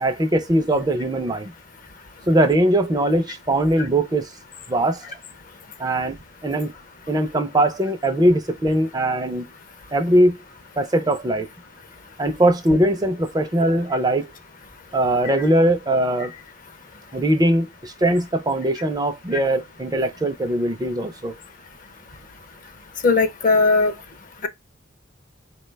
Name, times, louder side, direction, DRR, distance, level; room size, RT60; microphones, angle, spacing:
voice 1, 0.0-1.5 2.3-4.3 4.7-5.2 5.8-6.7 7.1-9.5 9.9-10.4 10.8-11.5 12.2-14.3 14.9-16.3 17.1-21.4, right 1 dB, 20° right, 0.4 m, -21 dB
voice 2, 23.0-23.9, left 3 dB, 40° left, 0.5 m, -17 dB
4.5 x 2.2 x 3.2 m
head